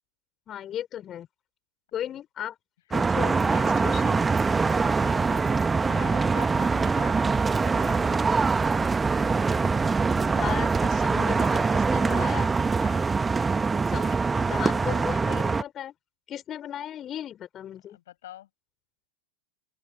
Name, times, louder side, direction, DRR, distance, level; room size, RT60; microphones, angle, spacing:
voice 1, 0.5-1.3 1.9-2.6 2.9-4.2 10.3-12.5 13.9-15.9 16.3-18.0, left 10 dB, 30° left, 5.0 m, -36 dB
sound 1, 2.9-15.6, right 4 dB, 15° right, 1.5 m, -24 dB
voice 2, 3.4-4.0 4.8-8.1 12.1-12.3 12.8-13.1 17.9-18.5, left 13 dB, 60° left, 5.6 m, -45 dB
open air
figure-of-eight pair, 90°, 0 cm